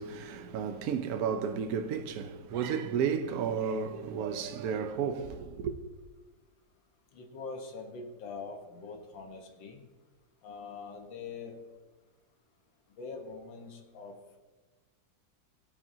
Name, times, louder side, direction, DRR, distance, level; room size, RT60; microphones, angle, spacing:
voice 1, 0.0-5.8, right 7 dB, 60° right, 1.1 m, -32 dB
voice 2, 7.1-9.8 10.4-11.6 13.0-14.4, left 4 dB, 80° left, 2.0 m, -43 dB
16.0 x 8.5 x 2.8 m
omnidirectional pair, 2.0 m